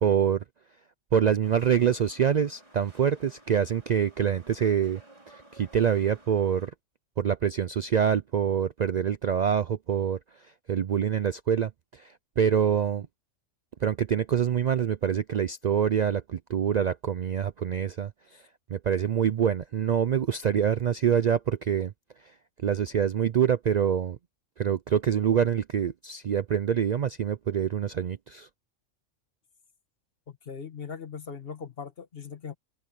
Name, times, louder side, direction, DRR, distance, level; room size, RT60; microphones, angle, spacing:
voice 1, 0.0-0.4 1.1-5.0 5.3-6.7 7.2-10.2 10.7-13.1 13.8-18.1 18.7-21.9 22.6-24.2 24.6-28.5, right 8 dB, 90° right, 0.3 m, -25 dB
sound 1, 1.4-6.7, right 1 dB, 25° right, 6.1 m, -55 dB
voice 2, 30.3-32.5, left 6 dB, 50° left, 1.5 m, -40 dB
omnidirectional pair, 1.3 m